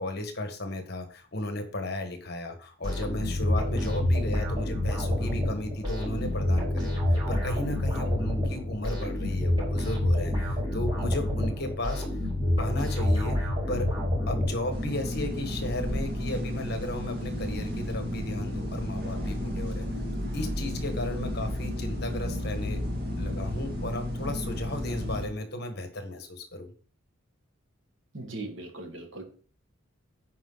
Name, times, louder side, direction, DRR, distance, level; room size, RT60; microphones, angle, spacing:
voice 1, 0.0-12.0 12.6-13.9 14.3-19.9 20.3-22.8 23.2-26.7, left 1 dB, 50° left, 6 dB, 1.4 m, -35 dB
sound 1, 2.8-15.0, left 1 dB, 20° right, 4.5 m, -28 dB
sound 2, 14.7-25.3, equal, 45° right, 2.1 m, -32 dB
voice 2, 28.1-29.2, right 2 dB, 65° right, 4 dB, 1.7 m, -39 dB
9.2 x 4.9 x 3.9 m, 0.42 s
head